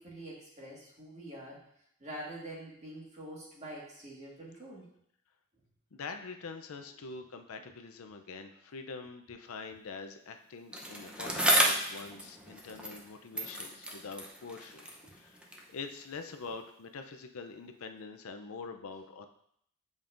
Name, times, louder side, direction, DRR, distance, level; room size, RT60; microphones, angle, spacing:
voice 1, 0.0-1.7 2.0-4.9 7.0-7.1 15.0-15.1, right 1 dB, 30° right, -4 dB, 1.7 m, -45 dB
voice 2, 5.9-19.3, left 4 dB, 65° left, 6 dB, 0.5 m, -45 dB
Bicycle, 10.7-13.1 13.3-15.7 16.5-16.6, equal, 5° right, 0.6 m, -32 dB
8.1 x 5.2 x 2.5 m, 0.69 s
head